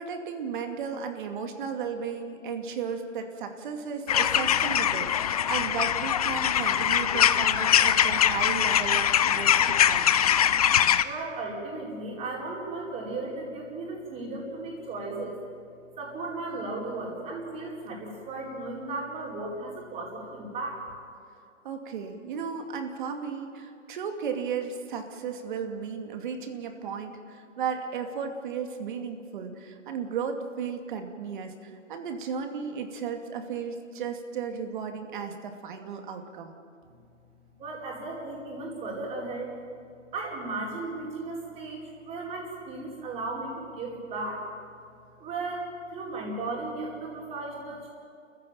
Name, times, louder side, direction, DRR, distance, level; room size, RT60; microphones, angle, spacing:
voice 1, 0.0-10.1 21.6-36.6, right 6 dB, 40° right, 5 dB, 2.5 m, -35 dB
sound 1, 4.1-11.0, left 9 dB, 30° left, 0.6 m, -23 dB
voice 2, 11.0-15.4 16.0-20.8 37.6-39.5 40.1-44.5 45.2-47.9, right 2 dB, 15° right, -2 dB, 4.7 m, -35 dB
29.0 x 15.0 x 9.0 m, 2.3 s
hypercardioid pair, 150°, 38 cm